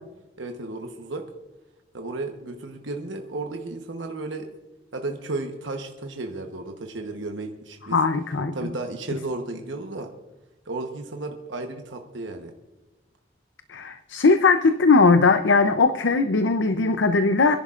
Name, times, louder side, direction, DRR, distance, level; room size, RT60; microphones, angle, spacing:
voice 1, 0.4-1.2 1.9-4.5 4.9-8.0 8.5-10.1 10.7-12.5, right 2 dB, 90° right, 3 dB, 1.1 m, -33 dB
voice 2, 7.9-8.5 13.7-17.6, left 4 dB, 85° left, 9 dB, 0.6 m, -19 dB
28.5 x 11.0 x 2.5 m, 1.0 s
head